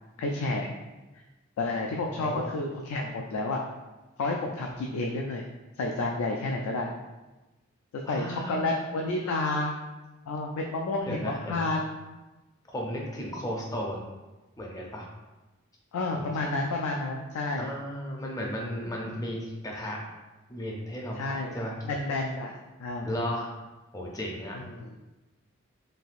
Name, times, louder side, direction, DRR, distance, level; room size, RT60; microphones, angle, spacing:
voice 1, 0.2-0.7 1.1-1.2 1.6-3.6 4.2-5.4 5.8-6.9 7.9-9.7 10.3-11.9 15.9-17.7 21.2-21.6 21.8-22.5 22.8-23.1 24.5-25.0, left 2 dB, 85° left, 0 dB, 0.3 m, -30 dB
voice 2, 2.1-2.5 8.1-8.8 11.0-11.7 12.7-14.1 14.6-15.1 16.2-16.3 17.6-20.0 20.5-21.8 23.1-23.5 23.9-24.6, equal, 15° left, -1 dB, 0.4 m, -35 dB
3.2 x 2.6 x 2.4 m, 1.1 s
head